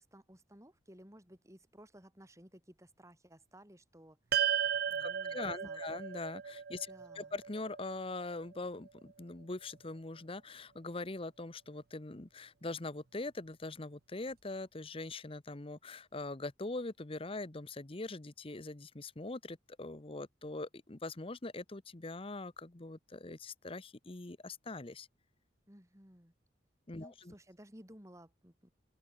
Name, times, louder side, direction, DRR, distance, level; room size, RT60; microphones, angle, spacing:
voice 1, 0.0-5.8 6.7-7.3 25.7-26.3 26.9-28.7, equal, 15° right, 5.9 m, -57 dB
sound 1, 4.3-8.8, right 9 dB, 55° right, 0.5 m, -36 dB
voice 2, 5.0-6.9 7.1-25.1 26.9-27.3, left 2 dB, 30° left, 1.0 m, -42 dB
open air
head